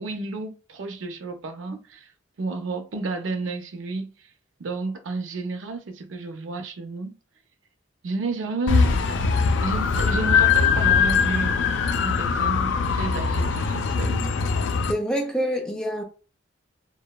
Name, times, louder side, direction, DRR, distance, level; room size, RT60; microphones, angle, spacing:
voice 1, 0.0-2.1 2.4-4.1 4.6-7.1 8.0-9.0 9.6-11.6 12.0-14.4, right 3 dB, 85° right, 0.5 m, -31 dB
sound 1, 8.7-14.9, left 5 dB, 75° left, 0.3 m, -21 dB
voice 2, 14.9-16.0, equal, 5° left, 0.5 m, -26 dB
2.8 x 2.1 x 2.2 m
head